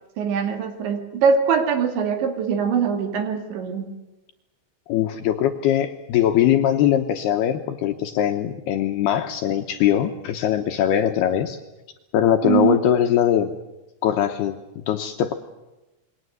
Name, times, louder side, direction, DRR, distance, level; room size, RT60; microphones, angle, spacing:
voice 1, 0.2-3.9 12.4-12.8, right 6 dB, 70° right, 7 dB, 4.5 m, -22 dB
voice 2, 4.9-11.6 12.1-13.6 14.0-14.6 14.9-15.3, left 10 dB, 75° left, 6 dB, 2.6 m, -21 dB
27.5 x 23.0 x 8.0 m, 1.0 s
omnidirectional pair, 5.5 m